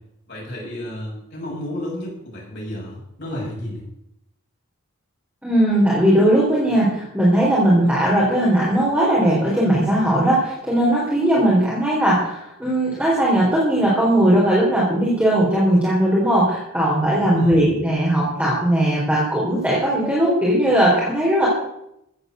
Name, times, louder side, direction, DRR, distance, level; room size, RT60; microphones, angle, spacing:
voice 1, 0.3-3.8 17.2-17.6, left 1 dB, 50° left, -4 dB, 7.2 m, -32 dB
voice 2, 5.4-21.5, right 1 dB, 5° right, -6 dB, 3.9 m, -18 dB
15.0 x 8.9 x 8.1 m, 0.81 s
head